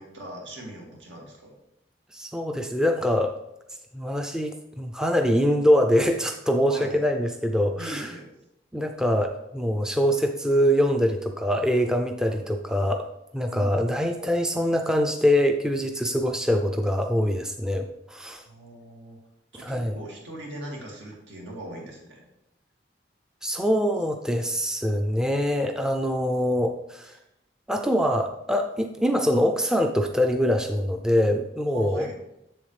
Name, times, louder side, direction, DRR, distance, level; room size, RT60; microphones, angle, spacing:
voice 1, 0.0-1.5 6.7-7.0 7.8-8.3 12.2-12.4 13.5-13.8 18.4-19.2 19.5-22.2 31.7-32.2, right 1 dB, 85° right, -2 dB, 2.3 m, -40 dB
voice 2, 2.1-3.3 3.9-8.1 8.7-13.1 13.3-18.4 19.6-20.0 23.4-27.2 27.7-32.1, equal, 5° right, 4 dB, 0.4 m, -24 dB
7.2 x 7.2 x 3.3 m, 0.84 s
head